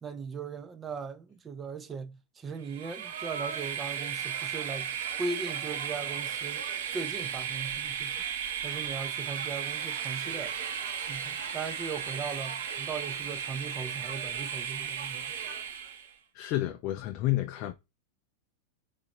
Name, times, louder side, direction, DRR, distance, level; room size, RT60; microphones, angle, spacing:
voice 1, 0.0-6.7 6.9-8.2 8.6-10.5 11.0-15.3, right 4 dB, 20° right, 0.5 m, -39 dB
Train, 2.6-16.1, right 8 dB, 70° right, 0.8 m, -35 dB
voice 2, 16.3-17.7, left 15 dB, 45° left, 0.4 m, -30 dB
4.0 x 2.5 x 2.9 m
supercardioid pair, 140°, 0 cm